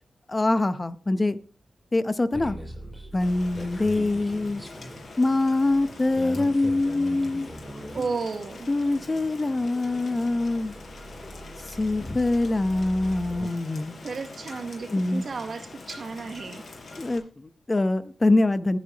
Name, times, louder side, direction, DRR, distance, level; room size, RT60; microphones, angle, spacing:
voice 1, 0.3-1.4 1.9-2.6 3.1-4.6 5.2-7.5 8.7-10.7 11.7-14.0 14.9-15.2 17.0-18.8, left 2 dB, 30° left, 0.8 m, -24 dB
sound 1, 2.3-13.5, equal, 5° right, 6.6 m, -41 dB
Rain, 3.2-17.2, left 3 dB, 60° left, 5.3 m, -44 dB
voice 2, 7.9-8.7 14.0-16.6, right 4 dB, 60° right, 1.3 m, -33 dB
20.5 x 8.4 x 3.0 m
cardioid pair, 75°, 0 cm